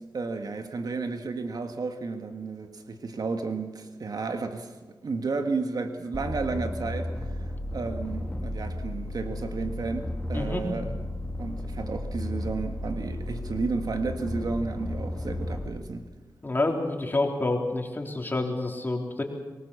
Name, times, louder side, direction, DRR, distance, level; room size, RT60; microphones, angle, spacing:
voice 1, 0.1-4.7 5.0-7.3 7.7-10.9 11.4-16.0, right 4 dB, 60° right, 1.7 m, -32 dB
sound 1, 6.1-15.7, left 1 dB, 15° left, 2.6 m, -34 dB
voice 2, 10.3-10.9 16.4-19.2, left 2 dB, 30° left, 3.6 m, -28 dB
23.5 x 19.5 x 7.1 m
cardioid pair, 65°, 7 cm